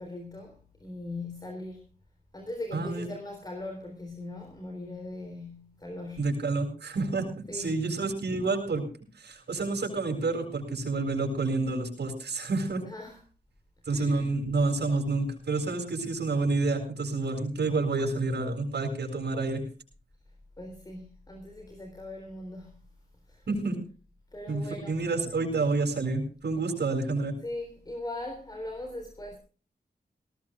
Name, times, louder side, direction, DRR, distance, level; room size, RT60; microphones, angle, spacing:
voice 1, 0.0-1.9 2.3-6.3 7.5-7.7 12.8-13.2 13.9-14.3 20.6-22.8 23.3-23.5 24.3-25.0 27.4-29.4, left 2 dB, 25° left, 3.7 m, -40 dB
voice 2, 2.7-3.1 6.2-8.8 9.2-12.8 13.9-19.6 23.5-23.8 24.5-27.3, right 3 dB, 85° right, 7.2 m, -29 dB
19.5 x 19.0 x 2.5 m
wide cardioid pair, 135°, 17 cm